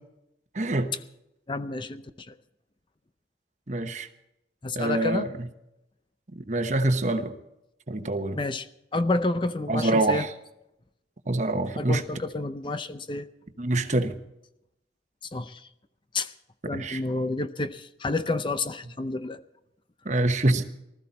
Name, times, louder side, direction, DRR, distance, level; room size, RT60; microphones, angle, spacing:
voice 1, 0.5-0.9 3.7-4.1 4.7-5.3 6.4-7.3 7.9-8.4 9.7-10.3 11.3-12.0 13.6-14.1 16.7-17.0 20.0-20.6, right 2 dB, 40° right, 8 dB, 1.1 m, -25 dB
voice 2, 1.5-2.3 4.6-5.3 8.3-8.7 8.9-10.3 11.8-13.3 15.3-15.7 16.1-16.3 16.7-19.4, left 2 dB, 25° left, 10 dB, 0.6 m, -29 dB
20.0 x 14.0 x 4.2 m, 0.84 s
head